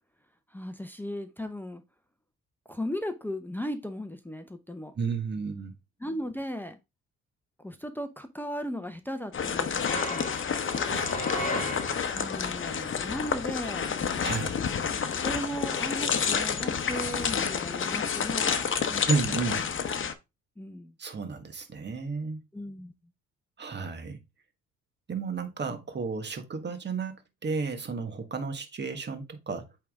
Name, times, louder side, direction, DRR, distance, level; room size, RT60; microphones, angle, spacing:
voice 1, 0.5-1.8 2.7-4.9 6.0-6.8 7.6-10.3 12.1-13.9 14.9-19.2 19.6-19.7 20.6-21.0 22.5-22.9, equal, 5° left, 0.7 m, -37 dB
voice 2, 5.0-5.7 10.9-12.1 14.2-14.6 19.1-19.7 21.0-22.4 23.6-24.2 25.1-29.7, right 4 dB, 35° right, 1.4 m, -33 dB
sound 1, 9.3-20.1, left 7 dB, 40° left, 0.9 m, -29 dB
sound 2, 9.8-12.5, left 2 dB, 25° left, 1.5 m, -35 dB
8.3 x 3.6 x 3.5 m
cardioid pair, 90°, 30 cm